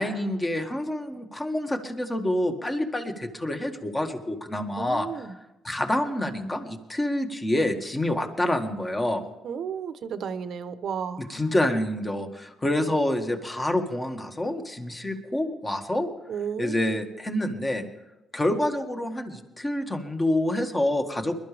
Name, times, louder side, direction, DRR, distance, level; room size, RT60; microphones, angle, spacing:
voice 1, 0.0-5.1 5.6-9.3 11.3-16.1 16.6-17.9 18.3-21.3, left 1 dB, 20° left, 1.8 m, -27 dB
voice 2, 4.8-5.3 9.4-11.4 16.3-16.8, right 7 dB, 65° right, 0.9 m, -33 dB
21.5 x 12.5 x 3.4 m
cardioid pair, 90°, 0 cm